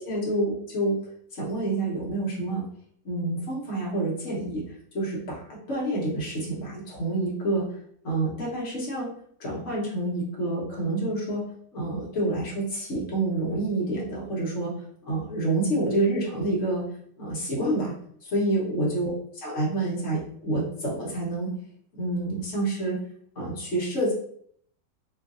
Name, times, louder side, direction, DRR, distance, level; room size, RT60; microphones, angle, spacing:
voice 1, 0.1-1.0 1.3-2.7 3.0-4.6 4.9-5.4 5.7-7.6 8.0-9.1 9.4-11.4 11.7-14.7 15.1-16.8 17.2-17.9 18.2-19.1 19.4-21.5 21.9-23.0 23.4-24.1, right 2 dB, 45° left, -5 dB, 1.3 m, -28 dB
3.1 x 2.5 x 2.5 m, 0.63 s
omnidirectional pair, 1.9 m